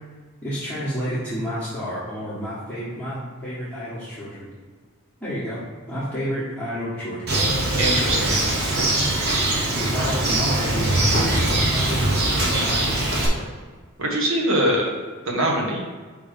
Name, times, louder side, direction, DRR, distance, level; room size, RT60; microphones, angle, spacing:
voice 1, 0.4-4.5 5.2-5.6 5.9-7.2 9.8-13.4, equal, 5° left, -12 dB, 1.5 m, -30 dB
Bird, 7.3-13.3, right 1 dB, 50° right, 1.1 m, -22 dB
voice 2, 7.8-8.4 14.0-14.9 15.3-15.8, right 1 dB, 65° right, -1 dB, 1.3 m, -22 dB
5.2 x 3.6 x 5.3 m, 1.4 s
head